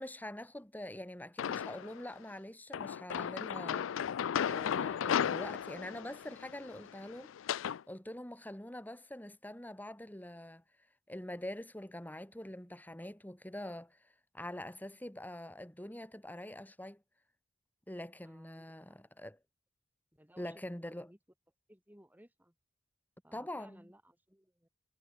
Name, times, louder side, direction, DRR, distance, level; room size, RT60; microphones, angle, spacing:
voice 1, 0.0-3.9 4.5-7.3 7.9-10.6 11.1-14.0 14.3-17.0 17.9-19.4 20.4-21.1 23.3-23.9, left 1 dB, 10° left, 2.0 m, -44 dB
sound 1, 1.4-2.0 2.7-7.8, left 8 dB, 75° left, 0.4 m, -35 dB
voice 2, 18.2-18.7 20.1-21.2 21.7-22.5 23.2-24.7, right 1 dB, 10° right, 7.5 m, -60 dB
head